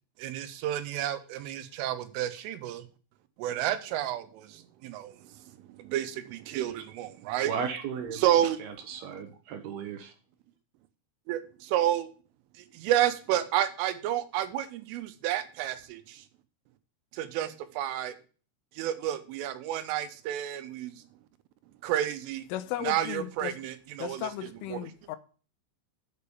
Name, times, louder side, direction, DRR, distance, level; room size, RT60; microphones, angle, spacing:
voice 1, 0.2-2.8 3.4-5.3 5.7-7.5 8.1-8.6 11.3-12.1 12.6-16.2 17.1-18.1 18.8-21.0 21.8-22.4 22.8-24.8, right 12 dB, 85° right, 3.6 m, -30 dB
voice 2, 7.4-8.3 8.6-10.1, right 7 dB, 70° right, 2.7 m, -35 dB
voice 3, 22.5-23.5 24.0-25.2, left 13 dB, 90° left, 3.3 m, -36 dB
8.0 x 6.8 x 6.9 m
omnidirectional pair, 5.6 m